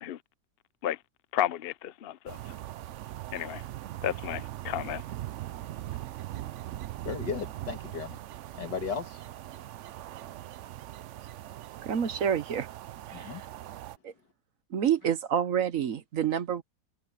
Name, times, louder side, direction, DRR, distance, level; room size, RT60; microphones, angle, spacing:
voice 1, 1.3-2.5 3.3-3.6 4.0-5.0, left 11 dB, 65° left, 0.5 m, -32 dB
sound 1, 2.3-14.0, right 14 dB, 75° right, 0.6 m, -41 dB
voice 2, 7.0-8.2 8.5-9.2 13.1-13.4, left 6 dB, 85° left, 2.6 m, -35 dB
voice 3, 11.8-12.7 13.1-13.5 14.0-14.1 14.7-16.6, right 9 dB, 55° right, 1.2 m, -28 dB
omnidirectional pair, 1.8 m